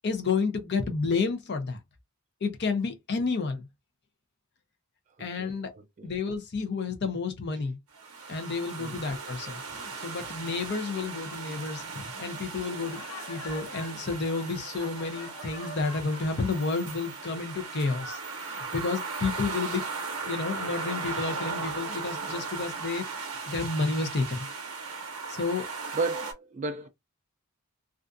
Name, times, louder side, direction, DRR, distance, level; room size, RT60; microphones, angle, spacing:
voice 1, 0.0-1.8 2.4-3.7 5.2-5.7 6.0-7.8 8.3-13.0 13.3-18.2 18.5-19.8 20.2-24.5 25.3-25.7, left 4 dB, 50° left, 0.6 m, -31 dB
voice 2, 5.4-6.1 8.8-9.1 25.9-26.9, right 3 dB, 35° right, 0.3 m, -33 dB
sound 1, 7.9-26.3, right 4 dB, 75° right, 0.7 m, -37 dB
Laughter, 12.8-16.8, left 2 dB, 80° left, 0.8 m, -45 dB
2.5 x 2.3 x 2.5 m
head